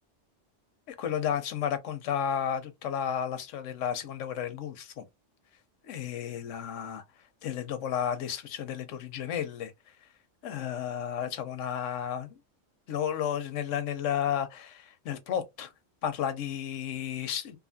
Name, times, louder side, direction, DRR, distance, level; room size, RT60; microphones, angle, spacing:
voice 1, 0.9-5.0 5.8-7.0 7.4-9.7 10.4-12.4 12.9-15.7 16.0-17.6, left 9 dB, 80° left, 1.0 m, -32 dB
2.6 x 2.4 x 2.6 m
omnidirectional pair, 1.3 m